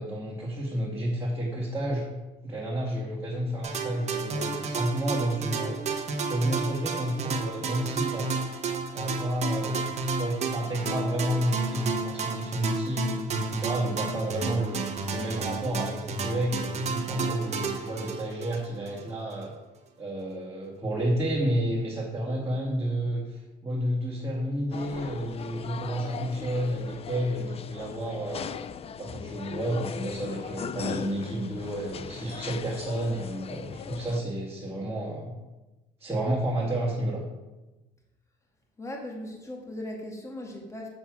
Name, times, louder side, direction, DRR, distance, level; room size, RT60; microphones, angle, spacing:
voice 1, 0.0-2.0 2.4-5.8 6.3-8.3 8.9-9.8 10.2-14.8 15.1-19.5 20.0-28.5 29.0-35.3 36.0-37.2, right 1 dB, 15° right, -5 dB, 2.2 m, -30 dB
sound 1, 3.6-19.0, right 4 dB, 40° right, 1.4 m, -32 dB
sound 2, 24.7-34.2, left 7 dB, 35° left, 0.5 m, -39 dB
voice 2, 38.8-40.9, left 1 dB, 15° left, 0 dB, 2.0 m, -38 dB
8.0 x 7.0 x 6.3 m, 1.1 s
cardioid pair, 110°, 17 cm